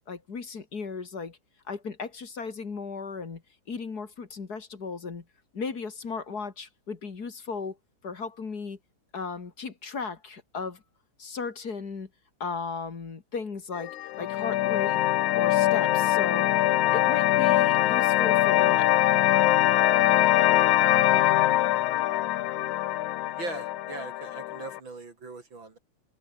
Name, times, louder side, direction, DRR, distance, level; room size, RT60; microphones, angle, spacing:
voice 1, 0.1-1.4 1.7-3.4 3.7-5.3 5.5-7.8 8.0-8.8 9.1-10.8 11.2-12.1 12.4-15.0 15.3-16.5 16.9-18.9, left 5 dB, 35° left, 2.4 m, -36 dB
sound 1, 13.7-24.8, left 14 dB, 80° left, 2.4 m, -23 dB
voice 2, 23.4-25.8, right 3 dB, 40° right, 3.3 m, -40 dB
omnidirectional pair, 3.4 m